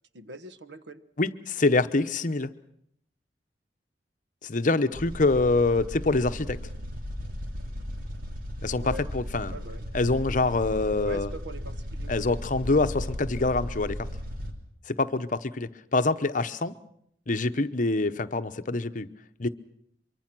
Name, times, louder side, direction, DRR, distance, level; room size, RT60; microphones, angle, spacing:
voice 1, 0.1-1.1 8.8-9.1 9.5-9.9 11.0-12.2, right 2 dB, 70° right, 13 dB, 1.1 m, -42 dB
voice 2, 1.2-2.5 4.4-6.6 8.6-9.6 9.9-11.3 12.1-14.0 14.9-16.7 17.3-19.1 19.4-19.5, left 3 dB, 45° left, 11 dB, 0.9 m, -25 dB
sound 1, 4.9-14.5, equal, 50° right, 3.1 m, -36 dB
24.0 x 23.5 x 6.2 m, 0.71 s
head